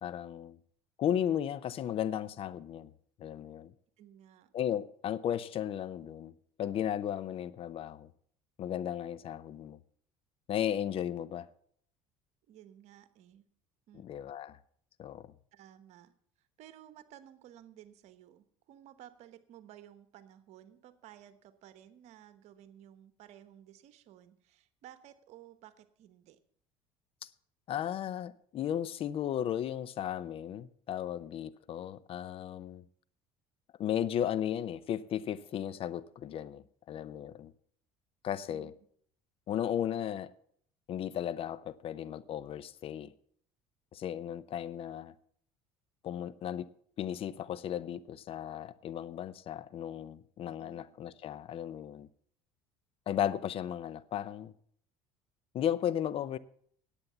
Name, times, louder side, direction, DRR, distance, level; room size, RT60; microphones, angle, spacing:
voice 1, 0.0-0.6 1.0-2.9 3.2-3.7 4.5-6.3 6.6-8.1 8.6-9.8 10.5-11.5 13.9-14.6 15.0-15.3 27.2-27.3 27.7-32.8 33.8-37.5 38.2-38.7 39.5-40.3 40.9-43.1 43.9-45.1 46.0-46.7 47.0-52.1 53.1-54.5 55.5-56.4, left 10 dB, 50° left, 0.6 m, -35 dB
voice 2, 4.0-4.5 12.5-13.5 13.9-14.1 15.5-16.1 16.4-26.4 38.5-38.7 50.5-51.0, right 11 dB, 65° right, 1.1 m, -55 dB
9.8 x 8.6 x 7.0 m
supercardioid pair, 85°, 12 cm